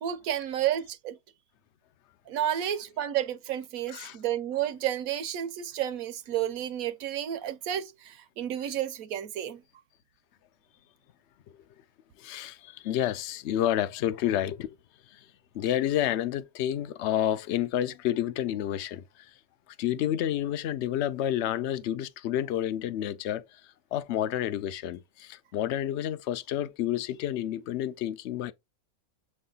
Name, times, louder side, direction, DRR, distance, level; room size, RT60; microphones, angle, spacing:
voice 1, 0.0-1.2 2.3-9.6, right 11 dB, 75° right, 1.2 m, -31 dB
voice 2, 12.2-14.8 15.1-15.2 15.5-19.3 19.8-23.6 23.9-28.5, left 11 dB, 60° left, 0.8 m, -30 dB
7.7 x 3.2 x 3.9 m
omnidirectional pair, 1.5 m